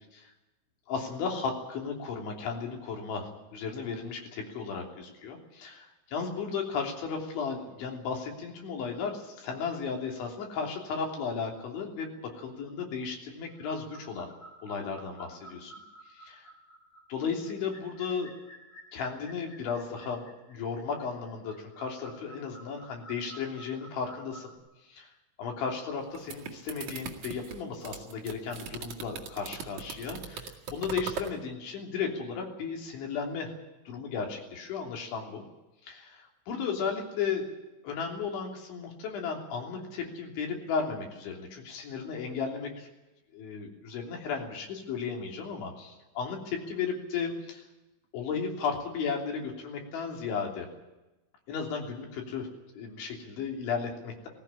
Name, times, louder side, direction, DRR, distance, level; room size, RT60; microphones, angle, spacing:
voice 1, 0.9-14.3 14.6-15.7 17.1-18.3 18.9-24.5 24.9-25.1 25.4-33.5 33.9-35.4 35.8-37.5 37.8-42.9 43.3-47.6 48.1-50.7 51.5-52.5 52.7-54.3, left 5 dB, 65° left, 1 dB, 5.4 m, -35 dB
sound 1, 13.5-24.6, right 2 dB, 80° left, 9.4 m, -53 dB
sound 2, 25.9-31.3, right 6 dB, 50° right, 2.6 m, -40 dB
20.0 x 16.5 x 9.9 m, 1.0 s
omnidirectional pair, 5.9 m